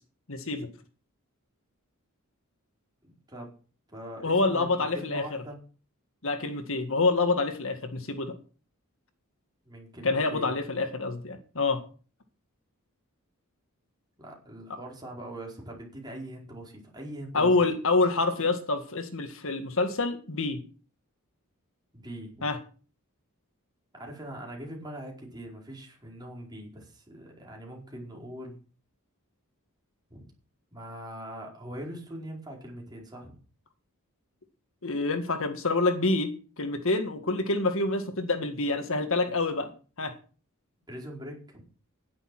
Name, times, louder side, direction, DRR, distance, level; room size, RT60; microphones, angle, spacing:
voice 1, 0.3-0.7 4.2-5.2 6.2-8.3 10.0-11.8 17.3-20.6 22.4-22.6 34.8-39.7 40.0-40.1, left 3 dB, 65° left, 8 dB, 1.8 m, -27 dB
voice 2, 3.0-3.5 3.9-5.6 9.6-10.6 14.2-17.7 21.9-22.5 23.9-28.6 30.1-30.2 30.7-33.4 40.9-41.6, right 1 dB, 20° right, -1 dB, 4.8 m, -42 dB
11.0 x 11.0 x 6.0 m, 0.38 s
head